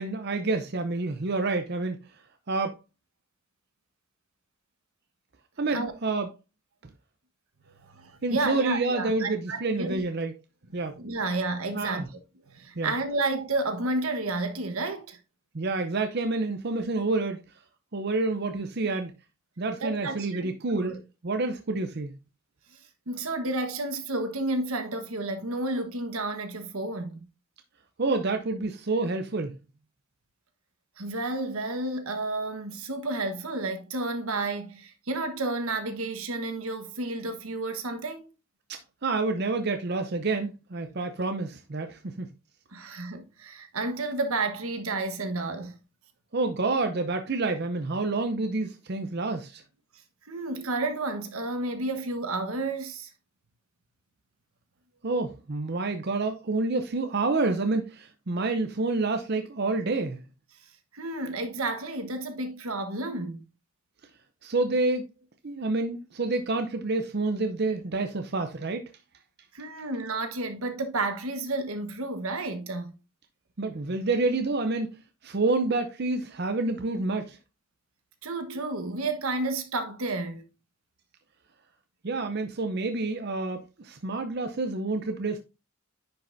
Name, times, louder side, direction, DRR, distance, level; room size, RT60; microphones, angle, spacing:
voice 1, 0.0-2.0 2.5-2.8 5.6-6.3 8.2-10.3 10.7-11.0 11.7-12.1 12.8-12.9 15.5-17.4 17.9-19.1 19.6-21.0 21.2-22.1 28.0-29.6 38.7-42.3 46.3-49.6 55.0-60.2 64.4-65.1 65.4-68.8 73.6-74.9 75.2-77.4 82.0-85.4, right 3 dB, 50° right, 0.6 m, -28 dB
voice 2, 7.8-10.1 11.0-12.1 12.5-15.2 19.8-20.5 20.8-21.0 22.7-27.3 31.0-38.3 42.7-45.8 50.2-53.1 60.9-63.4 69.5-72.9 78.2-80.4, right 2 dB, 80° right, 1.3 m, -31 dB
9.9 x 5.5 x 2.6 m
head